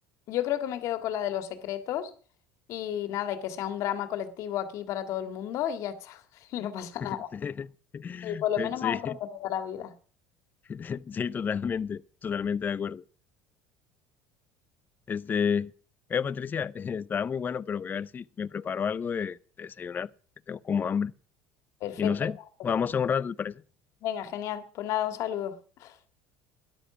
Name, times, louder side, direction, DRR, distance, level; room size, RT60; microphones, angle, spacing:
voice 1, 0.3-2.1 2.7-6.2 6.5-7.3 8.2-9.9 21.8-22.1 24.0-25.5 25.8-25.9, left 11 dB, 60° left, 1.9 m, -32 dB
voice 2, 7.0-9.2 10.7-13.0 15.1-15.7 16.1-20.1 20.5-21.1 22.0-22.4 22.6-23.6, left 7 dB, 30° left, 0.5 m, -30 dB
13.0 x 10.5 x 6.0 m
supercardioid pair, 90°, 6 cm